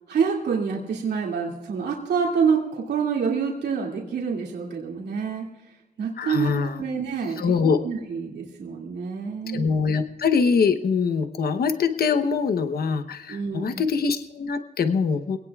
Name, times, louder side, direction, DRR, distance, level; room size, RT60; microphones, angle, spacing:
voice 1, 0.1-5.7 6.0-7.5 7.8-9.7 13.3-13.8, right 6 dB, 85° right, -1 dB, 2.4 m, -27 dB
voice 2, 6.2-6.8 7.4-7.8 9.5-15.4, left 5 dB, 65° left, 8 dB, 0.9 m, -23 dB
23.0 x 18.0 x 2.4 m, 0.95 s
wide cardioid pair, 115°, 17 cm